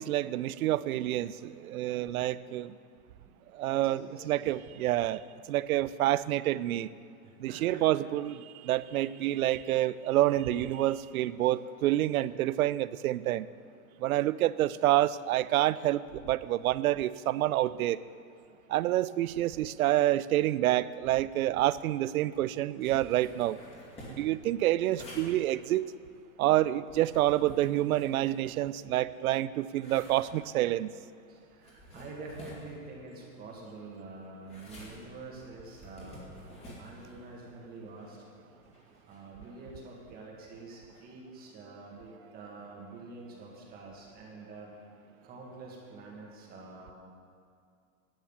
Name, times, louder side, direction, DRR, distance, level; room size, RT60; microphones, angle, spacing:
voice 1, 0.0-2.7 3.5-6.9 7.4-13.5 14.0-18.0 18.7-23.6 24.1-25.9 26.4-30.9, right 14 dB, 85° right, 18 dB, 0.5 m, -28 dB
voice 2, 3.7-4.6 7.5-7.9 31.3-36.4 36.8-38.2 39.0-44.7 45.2-46.9, right 3 dB, 20° right, -2 dB, 1.6 m, -47 dB
sound 1, 22.8-29.0 29.4-41.0, left 1 dB, 15° left, 2.1 m, -52 dB
11.0 x 7.2 x 7.1 m, 2.3 s
supercardioid pair, 150°, 42 cm